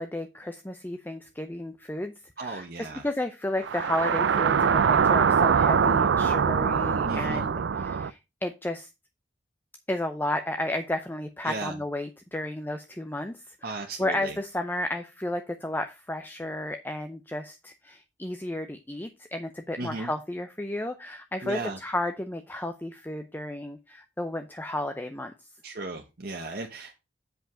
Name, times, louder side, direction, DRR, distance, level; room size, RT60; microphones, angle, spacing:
voice 1, 0.0-8.9 9.9-25.3, left 1 dB, 10° left, 7 dB, 0.6 m, -33 dB
voice 2, 2.4-3.0 7.0-7.4 11.4-11.8 13.6-14.4 19.8-20.1 21.4-21.8 25.6-26.9, right 2 dB, 55° right, 3 dB, 1.0 m, -35 dB
sound 1, 3.6-8.1, right 6 dB, 80° right, 0.4 m, -23 dB
7.9 x 5.1 x 4.9 m, 0.25 s
head